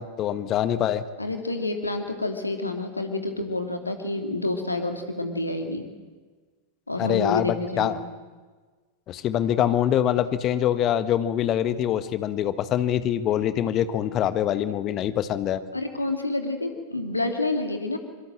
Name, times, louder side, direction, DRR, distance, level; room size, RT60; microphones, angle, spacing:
voice 1, 0.0-1.0 7.0-8.0 9.1-15.6, left 10 dB, 35° left, 12 dB, 1.4 m, -24 dB
voice 2, 1.2-5.8 6.9-8.1 15.7-18.0, left 2 dB, 85° left, 5 dB, 2.8 m, -28 dB
25.0 x 23.0 x 7.7 m, 1.4 s
figure-of-eight pair, 90°, 0 cm